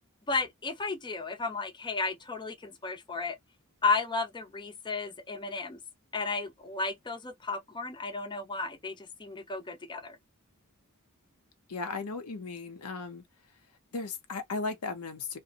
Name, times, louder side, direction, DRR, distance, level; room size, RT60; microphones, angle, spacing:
voice 1, 0.3-3.4 3.8-5.8 6.1-10.2, left 4 dB, 20° left, 0.6 m, -33 dB
voice 2, 11.7-13.2 13.9-15.4, left 3 dB, 85° left, 0.7 m, -36 dB
2.5 x 2.1 x 2.7 m
head